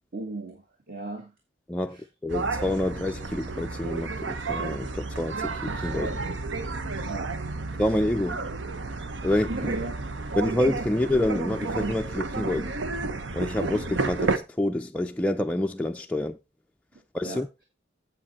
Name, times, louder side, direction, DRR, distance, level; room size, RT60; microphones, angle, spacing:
voice 1, 0.1-1.3 1.9-2.0 7.0-7.5 9.2-10.0 17.2-17.4, right 2 dB, 50° right, 1.5 m, -37 dB
voice 2, 2.2-6.2 7.8-8.4 9.2-9.7 10.4-12.7 13.3-16.4 17.1-17.5, left 1 dB, 5° left, 0.4 m, -27 dB
sound 1, 2.3-14.4, right 3 dB, 75° right, 0.9 m, -31 dB
7.6 x 7.6 x 4.2 m
head